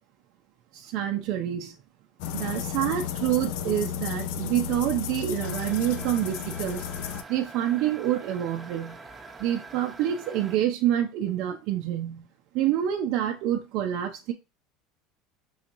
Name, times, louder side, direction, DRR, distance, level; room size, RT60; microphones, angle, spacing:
voice 1, 0.7-1.8 2.3-6.9 7.3-9.0 9.4-12.3 12.5-14.3, right 11 dB, 65° right, 0.5 m, -27 dB
sound 1, 2.2-7.2, left 9 dB, 75° left, 0.4 m, -33 dB
sound 2, 5.4-10.6, right 3 dB, 20° right, 0.8 m, -44 dB
5.5 x 2.9 x 2.6 m
supercardioid pair, 100°, 0 cm